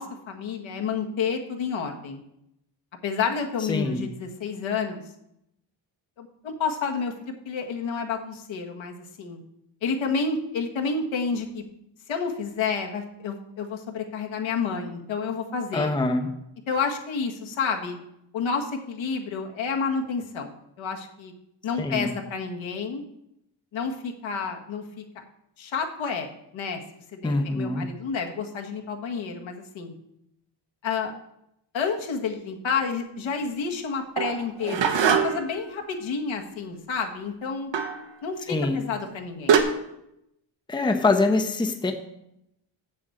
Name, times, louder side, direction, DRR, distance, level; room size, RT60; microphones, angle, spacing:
voice 1, 0.0-2.2 3.0-5.0 6.2-9.4 9.8-11.6 12.1-15.9 16.7-18.0 18.3-21.3 21.6-23.0 23.7-25.2 25.6-29.9 30.8-31.1 31.7-37.7 38.2-39.6, left 5 dB, 75° left, 2 dB, 1.7 m, -30 dB
voice 2, 3.7-4.0 15.7-16.3 21.8-22.1 27.2-27.8 38.5-38.8 40.7-41.9, left 2 dB, 10° left, 5 dB, 0.8 m, -24 dB
sound 1, 34.2-35.6 37.7-38.0 39.0-39.1 39.5-39.6, right 7 dB, 70° right, 1.3 m, -22 dB
7.5 x 7.1 x 7.9 m, 0.81 s
cardioid pair, 130°, 47 cm